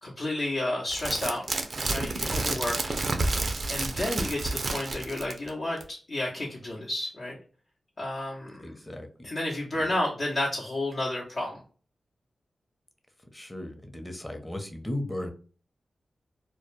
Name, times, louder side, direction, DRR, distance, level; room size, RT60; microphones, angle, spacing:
voice 1, 0.0-1.4 1.9-2.8 3.7-7.4 8.0-8.6 9.2-11.6, left 1 dB, 60° left, -6 dB, 0.7 m, -31 dB
sound 1, 0.9-5.5 5.8-5.9, right 2 dB, 65° right, 0.4 m, -30 dB
voice 2, 8.6-9.3 9.8-9.9 13.3-15.3, left 1 dB, 15° left, 4 dB, 0.7 m, -37 dB
2.2 x 2.1 x 3.1 m, 0.39 s
cardioid pair, 45°, 0 cm